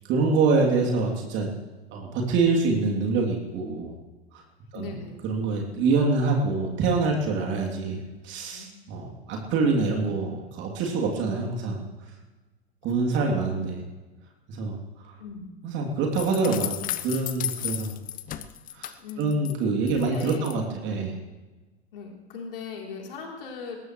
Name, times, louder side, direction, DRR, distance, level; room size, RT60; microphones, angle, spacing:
voice 1, 0.1-1.5 1.9-3.9 4.3-4.4 4.7-4.9 5.2-11.8 12.8-13.8 14.5-14.8 15.0-15.1 15.6-16.7 17.0-17.9 18.7-21.2, right 3 dB, 35° right, 0 dB, 3.1 m, -25 dB
voice 2, 4.7-5.2 7.8-8.1 8.5-8.8 12.9-13.4 15.2-15.5 19.0-19.4 19.9-20.5 21.9-23.8, left 5 dB, 60° left, 0 dB, 3.5 m, -39 dB
sound 1, 16.1-19.5 19.9-20.5, left 12 dB, 25° left, 0.9 m, -34 dB
21.5 x 20.0 x 3.2 m, 1.2 s
figure-of-eight pair, 90°, 32 cm